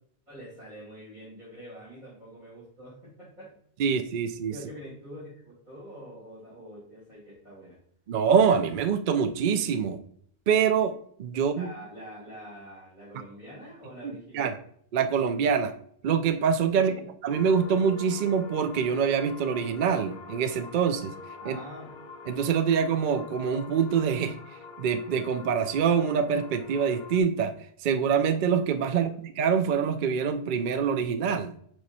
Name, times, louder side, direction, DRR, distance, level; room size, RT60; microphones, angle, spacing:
voice 1, 0.3-3.5 4.5-7.8 11.6-14.5 16.7-17.1 21.4-21.9 28.9-29.1, equal, 45° right, -9 dB, 2.9 m, -45 dB
voice 2, 3.8-4.6 8.1-10.0 10.5-11.7 14.0-14.6 14.9-15.7 16.0-16.9 17.2-21.1 21.5-21.6 22.3-27.5 27.8-31.5, right 6 dB, 60° right, 9 dB, 0.6 m, -25 dB
sound 1, 17.3-27.2, left 4 dB, 55° left, 0.7 m, -45 dB
5.0 x 4.7 x 4.1 m, 0.64 s
omnidirectional pair, 1.1 m